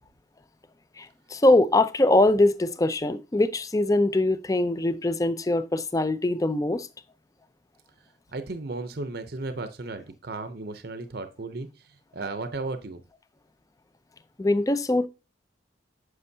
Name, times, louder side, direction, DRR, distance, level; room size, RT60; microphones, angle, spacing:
voice 1, 1.0-6.9 14.4-15.1, left 2 dB, 15° left, 0.4 m, -22 dB
voice 2, 8.3-11.7 12.1-13.0, right 3 dB, 50° right, 0.7 m, -34 dB
9.7 x 6.3 x 2.7 m
head